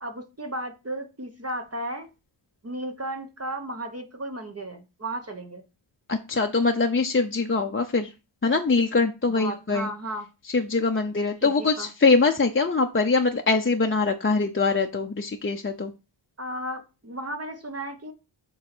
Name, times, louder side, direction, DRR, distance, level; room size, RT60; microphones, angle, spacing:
voice 1, 0.0-2.1 2.6-5.6 9.3-10.3 11.4-11.9 16.4-18.1, right 1 dB, 30° right, 5 dB, 1.0 m, -34 dB
voice 2, 6.1-8.1 8.4-9.9 10.5-15.9, left 4 dB, 25° left, 3 dB, 0.7 m, -23 dB
7.1 x 3.8 x 6.1 m, 0.29 s
wide cardioid pair, 90°, 49 cm